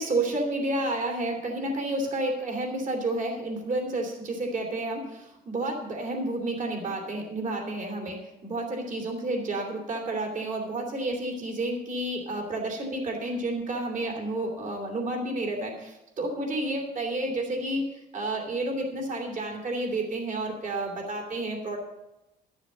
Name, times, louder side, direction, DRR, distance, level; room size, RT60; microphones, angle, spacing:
voice 1, 0.0-8.2 8.4-17.9 18.1-21.8, right 2 dB, 50° right, 2 dB, 3.0 m, -30 dB
12.0 x 7.1 x 6.8 m, 0.94 s
cardioid pair, 110°, 17 cm